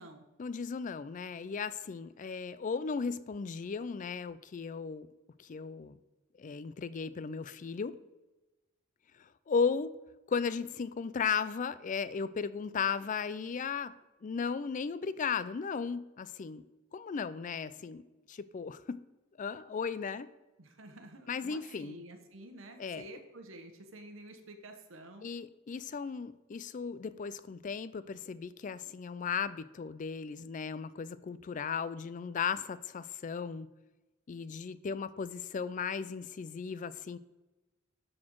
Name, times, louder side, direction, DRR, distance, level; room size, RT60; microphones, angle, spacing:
voice 1, 0.4-5.1 5.4-6.0 6.4-8.0 9.2-10.0 10.3-13.9 14.2-16.6 16.9-18.0 18.3-19.0 19.4-20.3 21.3-22.0 22.8-23.1 25.2-33.7 34.3-37.2, left 5 dB, 40° left, 15 dB, 0.4 m, -36 dB
voice 2, 20.6-25.3, right 1 dB, 75° right, 6 dB, 1.1 m, -50 dB
12.0 x 4.3 x 4.6 m, 1.1 s
head